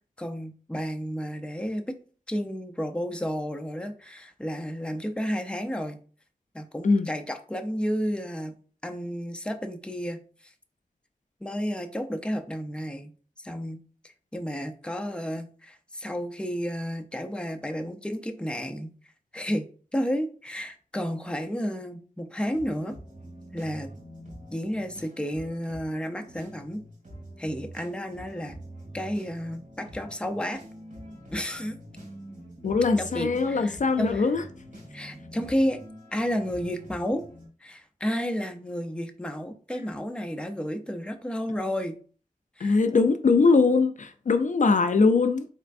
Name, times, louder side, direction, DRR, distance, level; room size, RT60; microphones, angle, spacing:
voice 1, 0.2-2.0 2.3-6.0 6.5-10.5 11.4-13.1 13.4-18.9 19.3-19.6 19.9-23.0 23.5-23.9 24.5-26.8 27.4-28.6 28.9-30.6 31.3-31.8 33.0-34.3 34.9-35.8 36.1-37.2 37.6-42.0 42.6-42.8, equal, 5° left, 0.5 m, -32 dB
sound 1, 22.4-37.5, equal, 60° right, 1.8 m, -45 dB
voice 2, 32.6-34.4 42.6-45.5, left 4 dB, 60° left, 0.4 m, -21 dB
4.3 x 3.3 x 2.5 m
wide cardioid pair, 65°, 14 cm